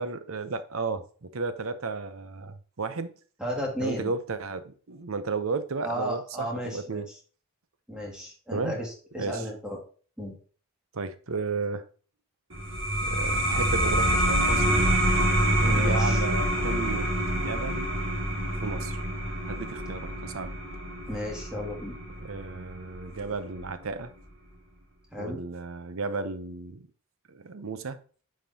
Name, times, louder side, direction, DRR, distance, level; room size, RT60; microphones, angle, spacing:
voice 1, 0.0-3.1 3.8-7.1 8.5-8.8 9.2-9.4 10.9-11.8 13.0-15.0 15.6-17.9 18.6-19.0 19.5-20.5 22.2-24.1 25.2-26.9 27.3-28.0, right 4 dB, 80° right, 0.7 m, -33 dB
voice 2, 3.4-4.1 5.8-7.2 7.9-9.8 10.2-10.3 15.6-16.2 21.1-21.9 25.1-25.4, equal, 5° right, 2.1 m, -34 dB
sound 1, 12.5-23.7, right 1 dB, 60° right, 2.0 m, -27 dB
9.2 x 5.3 x 2.8 m
head